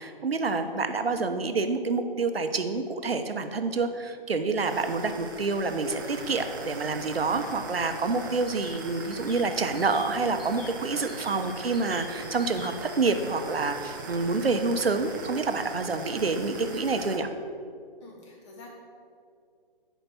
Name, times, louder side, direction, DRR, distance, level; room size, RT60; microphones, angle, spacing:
voice 1, 0.0-17.3, right 3 dB, 90° right, 7 dB, 1.0 m, -28 dB
sound 1, 4.6-17.2, right 3 dB, 20° right, 0.7 m, -41 dB
sound 2, 8.3-13.0, left 4 dB, 75° left, 2.4 m, -46 dB
voice 2, 18.0-18.7, left 3 dB, 30° left, -1 dB, 1.9 m, -48 dB
9.2 x 5.2 x 6.9 m, 2.3 s
hypercardioid pair, 160°, 29 cm